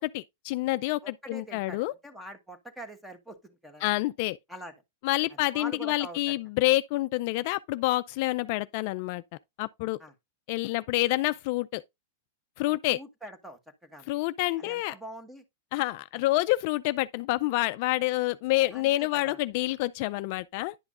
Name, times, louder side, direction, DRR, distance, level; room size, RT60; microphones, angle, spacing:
voice 1, 0.0-1.9 3.8-4.4 5.0-9.2 9.6-10.0 10.5-11.8 12.6-13.0 14.1-14.9 15.7-20.7, left 19 dB, 55° left, 0.4 m, -28 dB
voice 2, 1.0-3.9 4.5-4.7 5.5-6.3 10.0-10.1 12.9-14.1 14.6-15.4 18.7-19.4, equal, 5° right, 1.3 m, -44 dB
10.5 x 5.9 x 2.5 m
hypercardioid pair, 130°, 0 cm